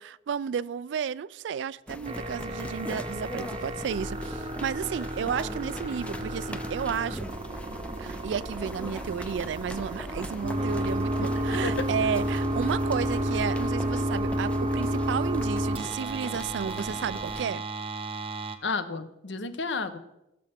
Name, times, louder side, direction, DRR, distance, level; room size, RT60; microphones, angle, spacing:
voice 1, 0.0-7.3 8.0-17.6, right 7 dB, 75° right, 0.3 m, -32 dB
sound 1, 1.9-17.4, left 1 dB, 5° left, 0.4 m, -42 dB
sound 2, 2.1-18.6, right 1 dB, 30° right, 0.7 m, -31 dB
sound 3, 3.6-14.0, left 1 dB, 45° left, 1.2 m, -48 dB
voice 2, 11.2-11.9 18.6-20.0, left 4 dB, 75° left, 0.9 m, -32 dB
17.5 x 6.7 x 3.5 m
head